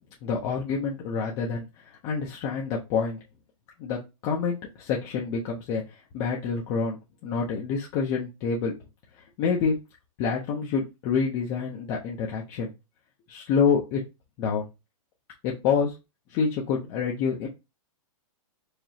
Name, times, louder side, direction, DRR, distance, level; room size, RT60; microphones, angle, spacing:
voice 1, 0.2-3.2 3.8-8.7 9.4-9.7 10.2-12.7 13.3-14.0 14.4-14.7 15.4-15.9 16.3-17.5, left 5 dB, 25° left, -2 dB, 0.7 m, -27 dB
4.8 x 2.9 x 2.8 m, 0.26 s
hypercardioid pair, 160°, 18 cm